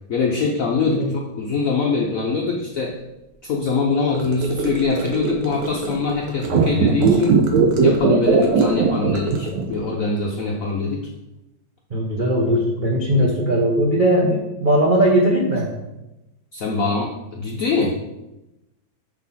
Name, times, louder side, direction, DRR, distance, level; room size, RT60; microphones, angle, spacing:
voice 1, 0.1-3.0 3.4-7.4 7.8-11.1 16.5-18.0, left 4 dB, 70° left, 0 dB, 0.8 m, -23 dB
voice 2, 0.8-1.2 11.9-15.7, right 1 dB, 40° right, -3 dB, 0.7 m, -19 dB
Gurgling / Car passing by / Sink (filling or washing), 4.1-9.8, right 2 dB, 80° right, 2.0 m, -30 dB
sound 1, 6.4-9.9 10.1-10.2, right 5 dB, 65° right, 1.3 m, -17 dB
6.4 x 6.0 x 4.1 m, 0.96 s
omnidirectional pair, 2.3 m